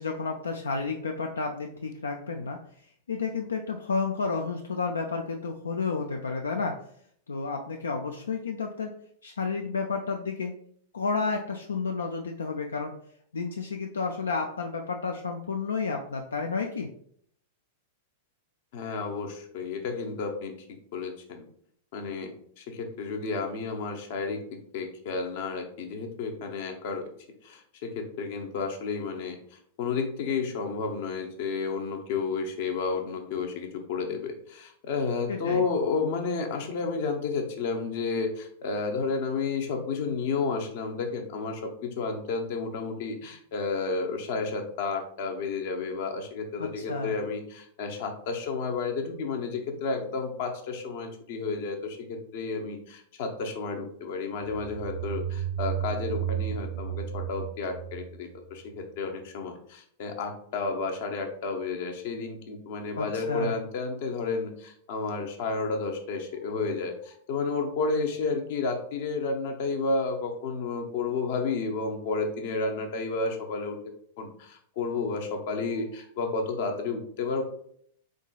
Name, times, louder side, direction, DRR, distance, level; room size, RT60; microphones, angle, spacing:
voice 1, 0.0-2.6 3.1-6.8 7.3-8.9 9.2-10.5 10.9-12.9 13.3-16.9 35.3-35.6 46.6-47.1 63.0-63.5, left 4 dB, 85° left, 3 dB, 0.3 m, -31 dB
voice 2, 18.7-21.4 21.9-24.4 24.7-27.0 27.4-73.8 74.2-77.4, left 4 dB, 60° left, 4 dB, 0.7 m, -31 dB
sound 1, 54.4-59.0, right 10 dB, 75° right, 0.6 m, -33 dB
3.8 x 3.6 x 2.3 m, 0.65 s
hypercardioid pair, 100°, 0 cm